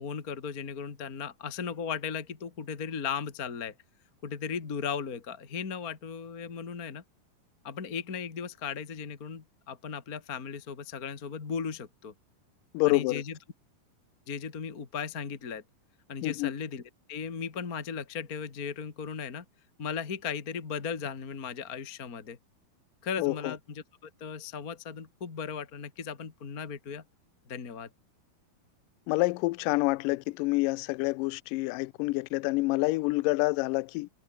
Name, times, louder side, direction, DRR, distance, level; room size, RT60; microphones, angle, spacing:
voice 1, 0.0-3.7 4.2-7.0 7.6-12.1 12.9-13.4 14.3-15.6 16.1-16.8 17.1-19.4 19.8-22.4 23.0-27.0 27.5-27.9, left 6 dB, 30° left, 2.0 m, -36 dB
voice 2, 12.7-13.2 16.2-16.5 23.2-23.5 29.1-34.1, left 22 dB, 80° left, 2.0 m, -27 dB
omnidirectional pair, 4.3 m